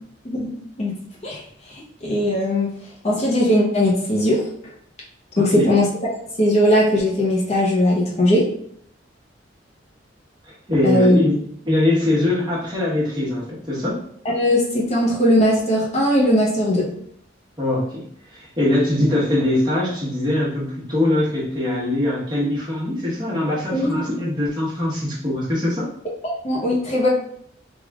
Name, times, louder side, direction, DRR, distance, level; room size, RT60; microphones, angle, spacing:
voice 1, 1.7-2.7 3.0-4.4 5.4-5.9 6.4-8.4 10.8-11.2 14.3-16.8 23.7-23.9 26.4-27.1, left 1 dB, 35° left, -4 dB, 0.8 m, -19 dB
voice 2, 5.4-5.7 10.7-14.0 17.6-18.0 18.3-25.9, left 1 dB, 25° right, -6 dB, 1.2 m, -22 dB
3.5 x 2.4 x 3.5 m, 0.66 s
head